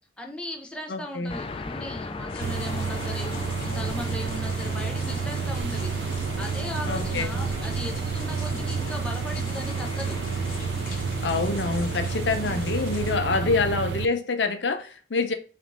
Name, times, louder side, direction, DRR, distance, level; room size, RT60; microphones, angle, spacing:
voice 1, 0.2-5.9 6.4-10.2 12.4-12.6 13.3-13.7, left 1 dB, 5° left, 0.7 m, -37 dB
voice 2, 0.9-1.3 6.9-7.4 11.2-15.3, left 4 dB, 90° left, 0.7 m, -26 dB
sound 1, 1.3-13.8, left 3 dB, 30° left, 0.3 m, -37 dB
sound 2, 2.3-13.1, left 3 dB, 50° left, 1.0 m, -43 dB
sound 3, 2.4-14.1, right 6 dB, 80° right, 0.3 m, -30 dB
5.1 x 2.7 x 3.5 m
head